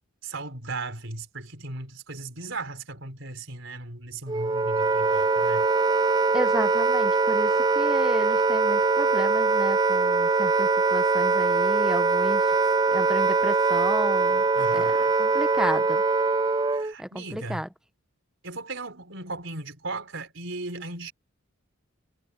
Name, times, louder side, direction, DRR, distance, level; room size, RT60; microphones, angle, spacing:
voice 1, 0.2-5.7 14.5-15.2 16.7-17.7 18.4-21.1, right 2 dB, 65° right, 4.8 m, -37 dB
Wind instrument woodwind instrument, 4.3-16.9, right 4 dB, 20° right, 0.3 m, -22 dB
voice 2, 6.3-12.5 12.9-14.4 14.7-14.9 15.2-16.0 17.0-17.7, equal, 5° right, 0.8 m, -33 dB
head